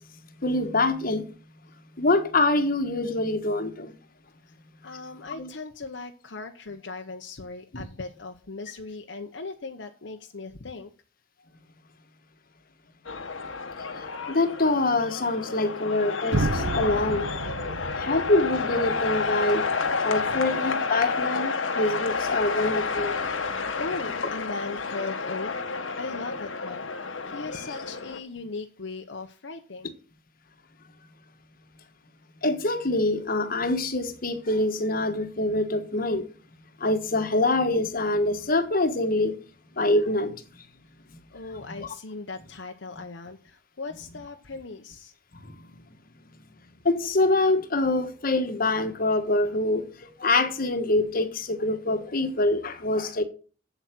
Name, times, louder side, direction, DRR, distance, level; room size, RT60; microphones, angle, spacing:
voice 1, 0.4-1.2 2.0-3.9 5.4-5.5 7.7-7.8 13.9-17.3 18.0-19.6 20.0-23.2 32.4-36.2 36.8-39.4 39.8-40.3 41.7-41.9 46.8-49.9 50.2-53.2, left 2 dB, 50° left, 1.4 m, -25 dB
voice 2, 4.8-10.9 20.2-20.4 23.8-30.0 41.3-45.1, left 3 dB, 70° left, 0.9 m, -38 dB
sound 1, 13.0-28.2, left 4 dB, 90° left, 1.4 m, -30 dB
sound 2, 16.3-20.3, right 3 dB, 75° right, 0.7 m, -32 dB
8.1 x 8.0 x 6.1 m
head